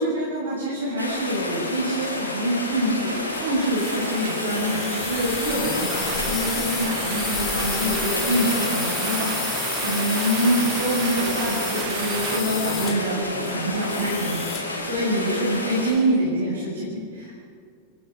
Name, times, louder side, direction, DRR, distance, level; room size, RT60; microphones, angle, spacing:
voice 1, 0.0-17.3, equal, 70° right, -5 dB, 6.9 m, -25 dB
Rain, 1.0-15.9, left 2 dB, 85° left, 5.1 m, -30 dB
sound 1, 2.7-12.4, right 16 dB, 45° right, 0.8 m, -34 dB
sound 2, 3.2-14.8, left 7 dB, 25° left, 3.8 m, -32 dB
30.0 x 20.0 x 5.4 m, 2.2 s
figure-of-eight pair, 90°, 0 cm